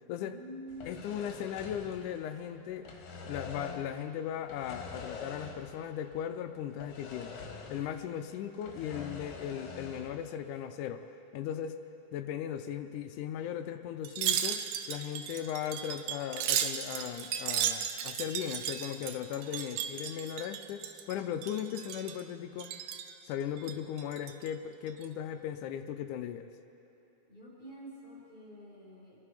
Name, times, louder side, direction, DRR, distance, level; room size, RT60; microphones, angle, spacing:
voice 1, 0.1-1.1 19.2-19.5 27.3-29.2, equal, 15° left, -8 dB, 5.0 m, -48 dB
sound 1, 0.7-2.5 2.7-4.0 4.5-5.9 6.1-6.2 6.8-8.1 8.4-10.2, left 4 dB, 60° left, 2.7 m, -45 dB
voice 2, 0.9-2.9 3.3-7.4 7.7-11.1 11.3-11.8 12.1-22.7 23.3-26.5, left 9 dB, 80° left, 8 dB, 1.9 m, -37 dB
Wind chime, 14.0-21.1 21.4-22.2 22.6-23.1 23.6-24.5 24.9-25.1, right 9 dB, 80° right, 1.7 m, -35 dB
26.0 x 11.0 x 5.0 m, 2.8 s
omnidirectional pair, 4.1 m